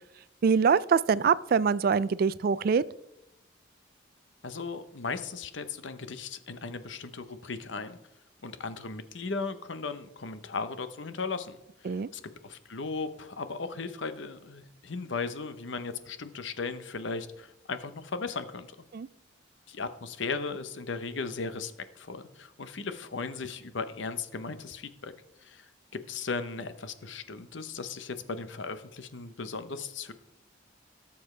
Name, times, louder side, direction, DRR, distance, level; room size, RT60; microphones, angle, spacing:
voice 1, 0.4-2.8 11.9-12.1 18.9-19.1, right 6 dB, 50° right, 18 dB, 0.3 m, -24 dB
voice 2, 4.4-8.0 8.4-11.6 11.8-18.7 19.7-25.1 25.4-25.7 26.1-30.1, left 4 dB, 75° left, 11 dB, 0.8 m, -37 dB
18.0 x 7.0 x 3.3 m, 0.87 s
head